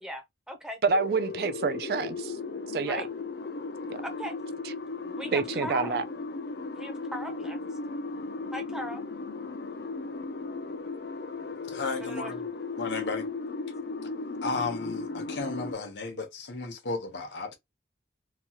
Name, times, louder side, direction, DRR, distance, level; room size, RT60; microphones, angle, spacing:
voice 1, 0.0-0.8 2.9-3.1 4.0-4.3 5.2-6.0 6.7-7.8 8.5-9.0 12.0-12.3, equal, 5° right, 0.6 m, -38 dB
voice 2, 0.8-2.3 2.7-3.0 3.9-4.0 5.3-6.0, right 4 dB, 60° right, 0.4 m, -27 dB
sound 1, 0.9-15.7, left 3 dB, 70° left, 0.4 m, -36 dB
voice 3, 11.7-12.5 12.8-13.3 14.4-17.6, left 3 dB, 85° left, 0.9 m, -34 dB
2.9 x 2.3 x 2.8 m
head